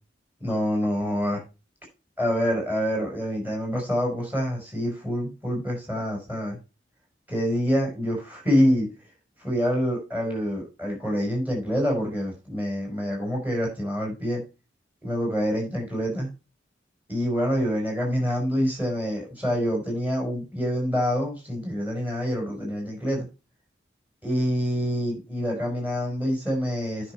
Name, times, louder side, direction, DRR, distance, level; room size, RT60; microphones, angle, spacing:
voice 1, 0.4-1.4 2.2-6.6 7.3-8.9 9.4-14.4 15.0-16.3 17.1-23.3 24.2-27.1, equal, 10° right, -1 dB, 5.2 m, -26 dB
9.8 x 6.1 x 4.5 m, 0.29 s
head